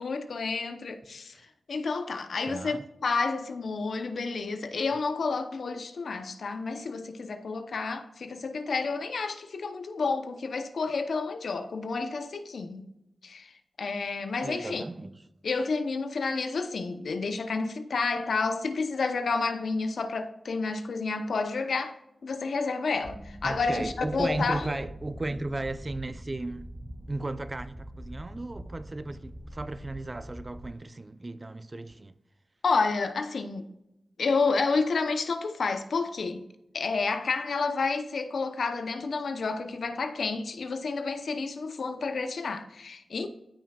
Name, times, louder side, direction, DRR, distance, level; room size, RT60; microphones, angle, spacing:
voice 1, 0.0-1.4 1.7-12.9 13.2-13.5 13.8-14.8 15.4-22.0 22.2-24.7 32.6-33.6 34.2-36.5 36.7-43.3, left 4 dB, 75° left, 0.8 m, -30 dB
voice 2, 2.5-2.9 14.4-15.1 23.4-26.7 27.1-32.1, right 2 dB, 35° right, 0.5 m, -35 dB
sound 1, 23.0-30.7, right 1 dB, 10° right, 0.8 m, -43 dB
13.5 x 5.9 x 2.4 m
cardioid pair, 50°, 0 cm